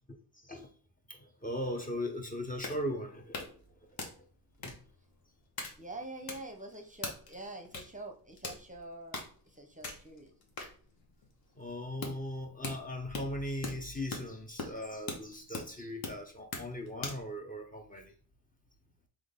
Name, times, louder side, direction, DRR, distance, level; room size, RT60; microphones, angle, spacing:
voice 1, 0.3-0.7 1.1-3.8 4.6-4.7 11.6-18.1, left 1 dB, 20° left, 0.8 m, -39 dB
sound 1, 2.1-17.3, left 3 dB, 55° left, 1.3 m, -43 dB
voice 2, 5.8-10.3, right 2 dB, 20° right, 0.8 m, -45 dB
3.8 x 3.4 x 3.7 m
cardioid pair, 75°, 43 cm